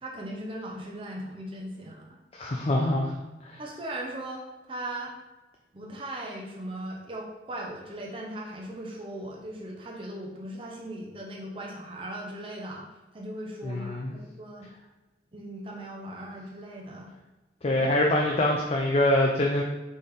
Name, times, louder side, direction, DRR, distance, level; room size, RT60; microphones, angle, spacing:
voice 1, 0.0-2.0 3.6-5.1 5.7-12.8 13.1-14.7 15.3-17.1 17.7-17.8, right 1 dB, 30° right, -2 dB, 0.6 m, -38 dB
voice 2, 2.3-3.1 3.4-3.6 13.6-14.1 17.6-19.6, left 1 dB, 30° left, -1 dB, 0.4 m, -24 dB
4.1 x 3.3 x 3.5 m, 1.1 s
head